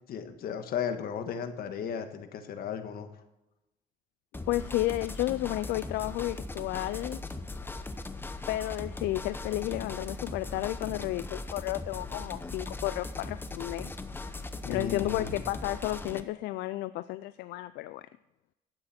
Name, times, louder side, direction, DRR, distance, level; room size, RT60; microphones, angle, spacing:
voice 1, 0.1-3.1 14.6-15.4, left 7 dB, 65° left, 7 dB, 1.5 m, -35 dB
sound 1, 4.3-16.2, left 3 dB, 10° left, 0.8 m, -39 dB
voice 2, 4.5-7.2 8.5-13.9 14.7-18.0, left 16 dB, 85° left, 14 dB, 0.4 m, -32 dB
12.5 x 9.0 x 4.3 m, 0.94 s
cardioid pair, 110°, 17 cm